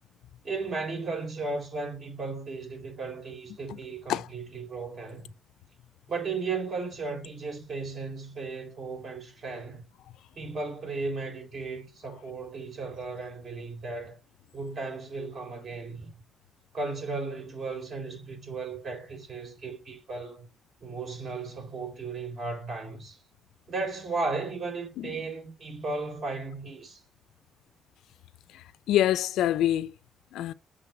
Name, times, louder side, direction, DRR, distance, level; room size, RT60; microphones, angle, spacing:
voice 1, 0.4-5.3 6.1-9.8 10.4-14.2 14.5-16.1 16.7-20.5 20.8-23.2 23.7-27.0, right 3 dB, 45° right, 3.9 m, -35 dB
voice 2, 28.5-29.9 30.3-30.5, left 12 dB, 80° left, 0.4 m, -26 dB
7.6 x 3.3 x 5.9 m
cardioid pair, 105°, 0 cm